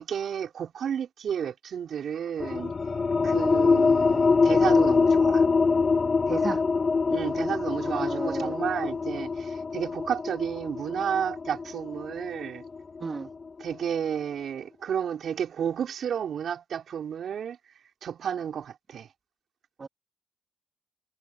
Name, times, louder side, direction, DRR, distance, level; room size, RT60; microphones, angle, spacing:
voice 1, 0.0-2.7 3.2-5.5 7.1-12.6 13.6-17.6 18.0-19.1, right 8 dB, 65° right, 3.8 m, -32 dB
sound 1, 2.4-13.6, left 4 dB, 40° left, 1.8 m, -24 dB
voice 2, 6.3-6.6 7.8-8.5 13.0-13.3 19.8-19.9, right 4 dB, 40° right, 3.2 m, -33 dB
supercardioid pair, 60°, 0 cm